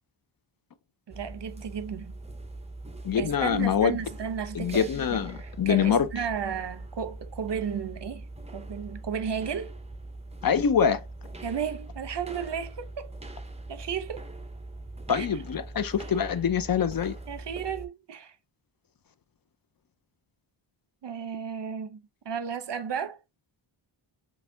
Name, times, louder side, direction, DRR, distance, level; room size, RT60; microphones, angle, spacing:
sound 1, 1.1-17.9, right 2 dB, 15° right, 0.7 m, -42 dB
voice 1, 1.1-2.1 3.2-8.3 8.5-9.8 11.4-13.1 13.7-14.3 15.1-15.3 17.3-18.3 21.0-23.2, right 7 dB, 55° right, 0.7 m, -34 dB
voice 2, 3.0-4.0 4.5-6.1 10.4-11.0 15.1-17.1, left 7 dB, 45° left, 0.5 m, -25 dB
4.2 x 3.3 x 2.6 m
wide cardioid pair, 80°, 50 cm